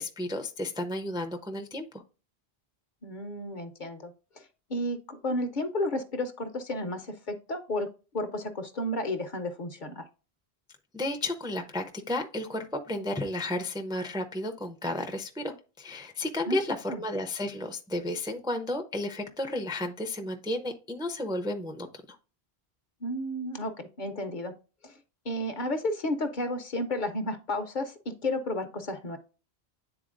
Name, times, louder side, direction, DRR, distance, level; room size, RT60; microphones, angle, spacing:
voice 1, 0.0-2.0 10.9-22.2, left 1 dB, 5° right, 5 dB, 0.4 m, -33 dB
voice 2, 3.0-4.4 4.7-7.9 8.1-10.0 16.5-16.6 16.9-17.0 23.0-24.5 24.8-25.0 25.2-27.9 28.2-29.2, left 1 dB, 50° left, 8 dB, 0.8 m, -32 dB
9.8 x 3.9 x 2.5 m, 0.34 s
omnidirectional pair, 1.1 m